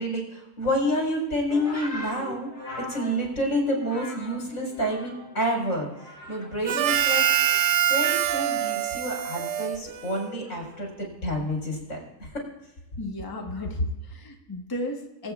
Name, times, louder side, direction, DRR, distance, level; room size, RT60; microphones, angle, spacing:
voice 1, 0.0-7.3 7.8-12.4 13.6-13.7, equal, 80° left, -1 dB, 4.5 m, -29 dB
sound 1, 1.5-5.4 5.7-6.6 6.9-9.6 10.4-10.8, left 1 dB, 35° left, 2.9 m, -42 dB
Harmonica, 6.6-10.4, right 11 dB, 70° right, 0.9 m, -24 dB
voice 2, 13.0-15.3, left 1 dB, 15° left, 1 dB, 1.1 m, -35 dB
23.0 x 8.6 x 2.4 m, 0.99 s
omnidirectional pair, 1.4 m